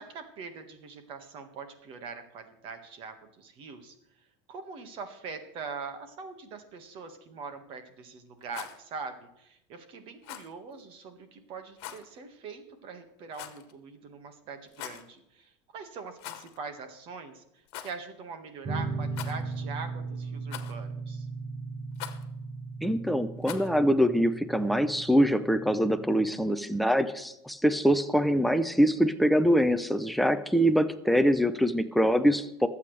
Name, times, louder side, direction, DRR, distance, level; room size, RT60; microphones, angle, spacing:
voice 1, 0.0-3.9 4.5-17.4 17.8-21.3, right 5 dB, 35° right, 8 dB, 1.6 m, -42 dB
Rattle, 8.4-8.8 10.2-10.5 11.8-12.0 13.3-13.7 14.7-15.1 16.2-16.6 16.9-17.0 17.7-18.0 19.1-19.6 20.5-20.9 21.9-22.2 23.4-23.8, left 13 dB, 60° left, 1.4 m, -42 dB
sound 1, 18.6-26.3, right 4 dB, 20° right, 1.3 m, -37 dB
voice 2, 22.8-32.7, equal, ahead, 12 dB, 0.5 m, -24 dB
25.0 x 8.6 x 3.3 m, 0.83 s
cardioid pair, 175°, 15 cm